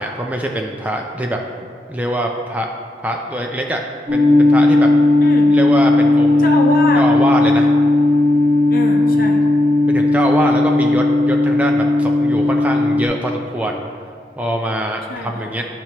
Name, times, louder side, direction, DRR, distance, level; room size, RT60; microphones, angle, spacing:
voice 1, 0.0-1.4 1.9-2.7 3.0-3.8 4.1-4.9 5.5-6.5 6.9-7.7 9.1-9.2 9.9-13.8 14.4-15.6, right 1 dB, 10° right, 1 dB, 0.3 m, -23 dB
sound 1, 4.1-13.1, left 2 dB, 25° right, 1.2 m, -15 dB
voice 2, 5.2-5.5 6.4-7.1 8.7-9.4 15.1-15.6, left 2 dB, 50° left, 2 dB, 0.7 m, -24 dB
10.5 x 4.3 x 2.8 m, 2.1 s
head